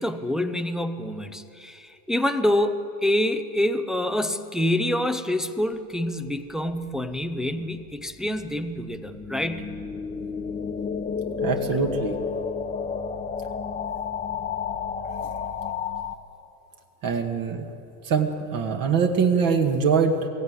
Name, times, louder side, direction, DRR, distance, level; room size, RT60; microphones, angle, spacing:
voice 1, 0.0-9.8, left 1 dB, ahead, 7 dB, 0.5 m, -26 dB
sound 1, 6.8-16.1, left 6 dB, 15° left, 1.1 m, -31 dB
voice 2, 11.4-12.2 17.0-17.7 18.0-20.3, right 6 dB, 40° right, 3 dB, 2.0 m, -23 dB
22.5 x 16.5 x 9.6 m, 2.6 s
supercardioid pair, 140°, 49 cm